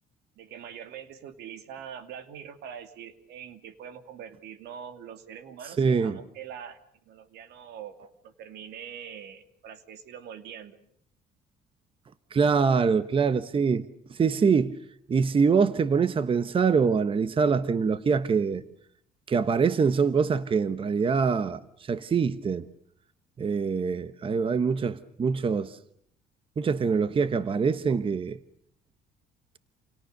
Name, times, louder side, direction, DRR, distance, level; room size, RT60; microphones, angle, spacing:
voice 1, 0.4-6.8 7.1-10.8, right 8 dB, 75° right, 2.5 m, -43 dB
voice 2, 5.8-6.2 12.3-14.7 15.1-18.6 19.3-22.7 23.4-25.8 26.6-28.4, right 5 dB, 30° right, 1.1 m, -24 dB
29.0 x 28.5 x 6.7 m
cardioid pair, 110°, 17 cm